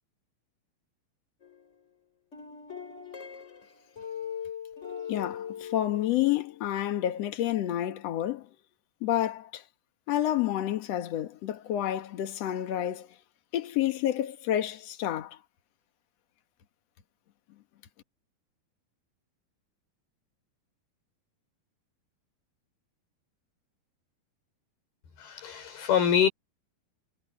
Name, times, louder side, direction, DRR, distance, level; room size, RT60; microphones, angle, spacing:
sound 1, 1.4-1.9 2.3-6.6, left 8 dB, 20° left, 3.0 m, -40 dB
voice 1, 5.1-8.5 9.0-9.6 10.1-13.1 13.5-15.4, left 12 dB, 55° left, 2.0 m, -29 dB
voice 2, 25.2-26.3, left 8 dB, 70° left, 6.2 m, -25 dB
omnidirectional pair, 4.5 m